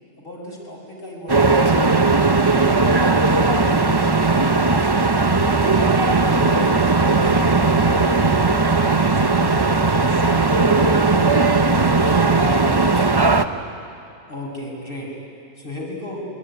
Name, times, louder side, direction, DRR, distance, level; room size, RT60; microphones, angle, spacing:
voice 1, 0.2-2.1 2.7-5.1 5.4-7.9 14.3-15.1 15.6-16.2, left 1 dB, 35° left, -2 dB, 6.3 m, -36 dB
sound 1, 1.3-13.4, right 3 dB, 20° right, 0.7 m, -17 dB
voice 2, 8.4-11.3 11.7-13.3, right 5 dB, 80° right, 4 dB, 2.0 m, -36 dB
27.5 x 21.5 x 9.8 m, 2.5 s
omnidirectional pair, 1.5 m